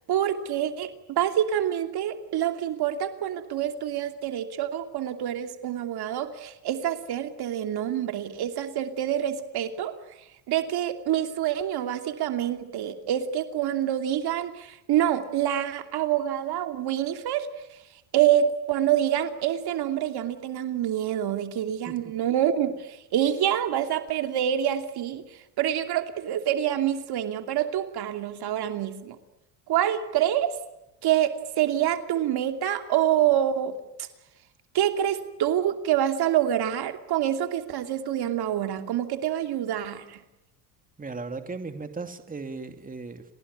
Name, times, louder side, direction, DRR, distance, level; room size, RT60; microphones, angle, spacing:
voice 1, 0.1-9.9 10.5-17.5 18.1-25.3 25.6-29.2 29.7-30.6 31.0-33.7 34.7-40.2, right 11 dB, 55° right, 6 dB, 2.8 m, -26 dB
voice 2, 41.0-43.3, right 4 dB, 20° right, 7 dB, 2.7 m, -37 dB
30.0 x 19.5 x 9.9 m, 0.91 s
supercardioid pair, 100°, 46 cm